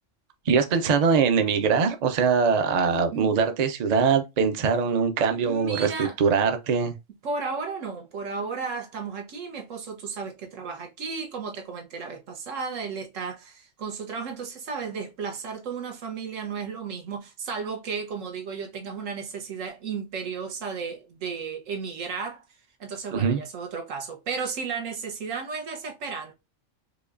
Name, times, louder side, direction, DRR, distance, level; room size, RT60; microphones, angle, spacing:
voice 1, 0.5-7.0 23.1-23.4, right 6 dB, 50° right, 0.5 m, -22 dB
voice 2, 5.4-6.2 7.2-22.4 22.8-26.3, right 5 dB, 90° right, 1.3 m, -34 dB
4.9 x 2.3 x 2.4 m
omnidirectional pair, 1.3 m